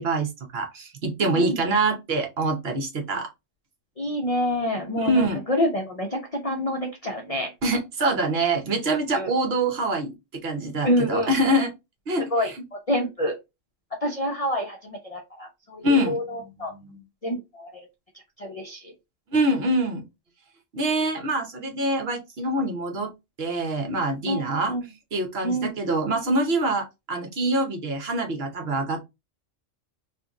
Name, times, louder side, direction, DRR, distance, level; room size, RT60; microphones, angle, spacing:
voice 1, 0.0-3.3 5.0-5.4 7.6-11.7 12.1-12.2 15.8-16.2 16.8-17.0 19.3-20.0 20.7-23.1 23.4-24.7 25.1-29.0, right 1 dB, 55° right, 3 dB, 1.0 m, -25 dB
voice 2, 4.0-7.5 9.1-9.3 10.8-11.6 12.3-13.4 14.0-16.7 17.2-17.9 18.1-18.9 24.2-24.8 25.4-25.7, equal, 45° left, 1 dB, 0.4 m, -27 dB
2.8 x 2.5 x 3.5 m, 0.22 s
omnidirectional pair, 1.3 m